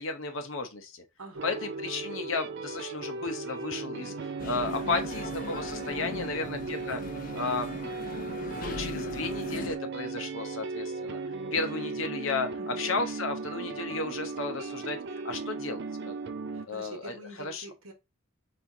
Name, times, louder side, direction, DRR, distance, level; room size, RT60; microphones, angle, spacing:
voice 1, 0.0-1.0 1.4-7.0 7.3-7.7 8.2-11.2 11.5-16.2 16.7-17.7, left 3 dB, 65° left, 0.8 m, -34 dB
voice 2, 1.2-1.7 6.2-6.7 12.6-12.9 16.5-17.9, right 1 dB, 80° right, 1.1 m, -46 dB
sound 1, 1.3-16.7, right 4 dB, 50° right, 0.4 m, -37 dB
sound 2, 4.4-9.8, left 4 dB, 40° left, 0.4 m, -40 dB
4.4 x 3.5 x 2.7 m
head